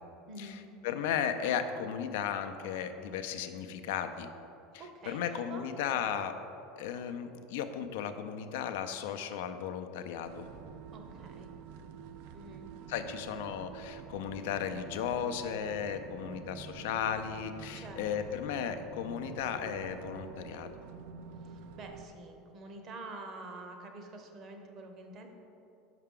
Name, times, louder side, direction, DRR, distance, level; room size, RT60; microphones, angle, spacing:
voice 1, 0.3-0.6 4.8-5.7 10.9-11.5 12.3-12.7 17.7-18.4 21.4-25.3, right 2 dB, 45° right, 4 dB, 0.8 m, -47 dB
voice 2, 0.8-4.3 5.1-6.3 6.8-10.4 12.9-20.7, left 8 dB, 75° left, 8 dB, 0.4 m, -35 dB
sound 1, 10.2-22.1, right 7 dB, 70° right, 0.4 m, -48 dB
5.7 x 5.7 x 3.7 m, 2.8 s
supercardioid pair, 105°, 0 cm